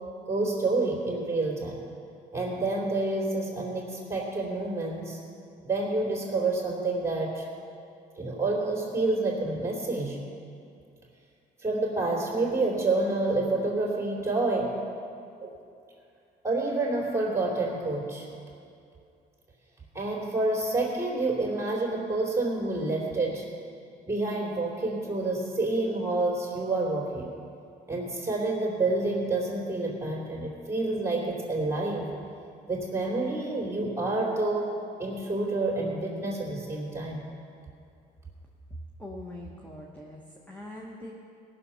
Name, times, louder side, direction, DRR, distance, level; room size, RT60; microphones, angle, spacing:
voice 1, 0.3-1.8 2.3-5.2 5.6-7.5 8.2-10.2 11.6-14.8 15.4-15.5 16.4-18.3 19.9-23.5 24.1-27.3 27.9-32.1 32.7-37.2, right 2 dB, 15° right, -3 dB, 3.1 m, -28 dB
voice 2, 39.0-41.1, left 1 dB, 10° left, -2 dB, 1.2 m, -42 dB
17.5 x 6.9 x 5.7 m, 2.5 s
cardioid pair, 110°, 17 cm